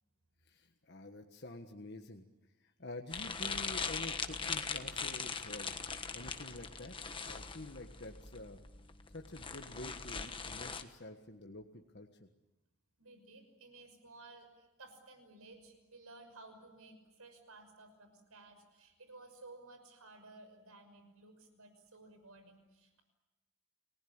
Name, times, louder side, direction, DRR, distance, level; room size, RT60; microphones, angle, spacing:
voice 1, 0.5-2.2 2.6-8.6 9.1-12.3, left 2 dB, 50° left, 4 dB, 1.5 m, -49 dB
sound 1, 3.1-10.8, left 5 dB, 25° left, 1.3 m, -41 dB
voice 2, 13.0-23.0, right 2 dB, 80° right, 8 dB, 6.0 m, -56 dB
29.5 x 20.0 x 8.9 m, 1.0 s
head